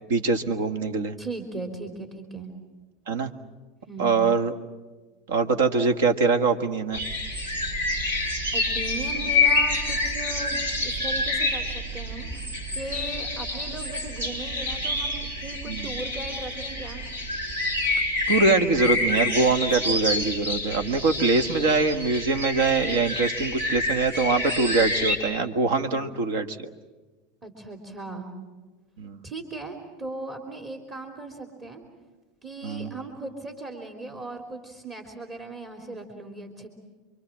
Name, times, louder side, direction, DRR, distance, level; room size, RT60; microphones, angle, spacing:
voice 1, 0.1-1.1 3.1-3.3 4.0-4.5 5.3-7.0 15.7-15.9 18.3-26.7 29.0-29.2 32.6-32.9, right 4 dB, 70° right, 8 dB, 1.6 m, -23 dB
voice 2, 1.2-2.5 3.9-4.2 8.5-17.0 25.9-26.2 27.4-28.3 29.2-31.8 32.4-36.7, right 3 dB, 30° right, 3 dB, 3.4 m, -38 dB
sound 1, 6.9-25.2, left 2 dB, 85° right, 4.7 m, -28 dB
28.0 x 24.0 x 7.5 m, 1.3 s
hypercardioid pair, 80°, 0 cm